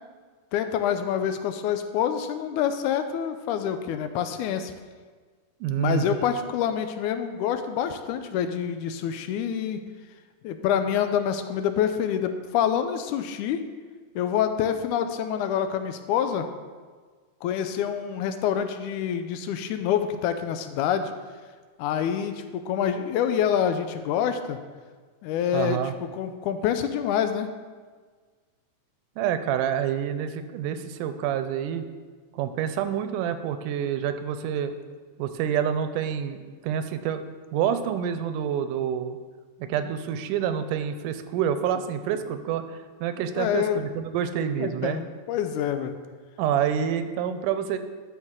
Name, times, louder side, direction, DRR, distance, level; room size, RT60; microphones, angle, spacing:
voice 1, 0.5-4.7 5.8-9.8 10.4-13.6 14.2-16.5 17.4-21.1 21.8-24.6 25.2-25.8 26.2-27.5 43.4-43.8 44.6-46.0, left 9 dB, 80° left, 8 dB, 2.0 m, -26 dB
voice 2, 5.6-6.2 25.5-25.9 29.2-31.8 32.3-34.7 35.2-36.4 36.6-37.2 37.5-39.2 39.6-45.0 46.4-47.8, right 9 dB, 85° right, 10 dB, 2.2 m, -27 dB
12.0 x 6.3 x 3.7 m, 1.5 s
omnidirectional pair, 3.6 m